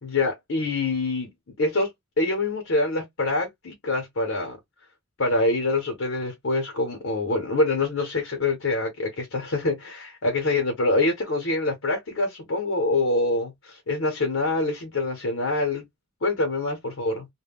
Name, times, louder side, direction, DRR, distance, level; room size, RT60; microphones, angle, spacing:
voice 1, 0.0-1.3 1.6-1.9 2.2-4.6 5.2-15.8 16.2-17.3, left 2 dB, 70° left, 0.7 m, -25 dB
2.1 x 2.1 x 3.3 m
head